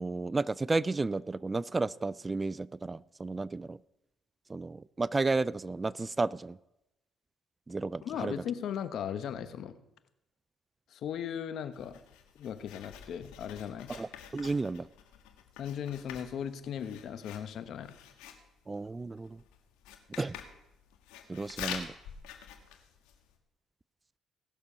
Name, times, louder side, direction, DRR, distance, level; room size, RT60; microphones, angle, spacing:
voice 1, 0.0-3.8 4.5-6.6 7.7-8.4 13.9-14.9 18.7-19.4 20.2-20.4 21.3-21.9, right 3 dB, 25° right, 21 dB, 0.3 m, -32 dB
voice 2, 8.0-9.8 10.9-12.0 12.3-13.9 15.6-18.0, left 8 dB, 65° left, 11 dB, 1.0 m, -37 dB
Writing, 11.7-23.3, left 9 dB, 90° left, 1.5 m, -47 dB
17.5 x 6.7 x 5.6 m, 0.90 s
supercardioid pair, 70°, 0 cm